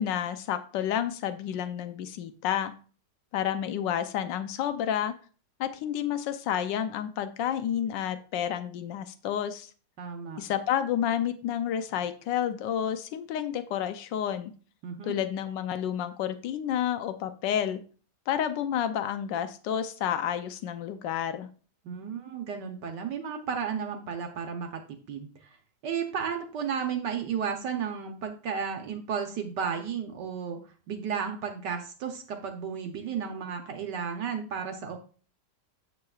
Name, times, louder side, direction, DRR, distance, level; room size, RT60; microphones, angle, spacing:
voice 1, 0.0-2.7 3.3-5.1 5.6-9.7 10.4-14.5 15.0-17.8 18.3-21.5, left 9 dB, 80° left, 10 dB, 1.3 m, -30 dB
voice 2, 10.0-10.4 14.8-15.2 21.8-25.6 25.8-35.0, right 7 dB, 75° right, 4 dB, 1.5 m, -33 dB
9.3 x 7.6 x 2.4 m, 0.39 s
omnidirectional pair, 1.9 m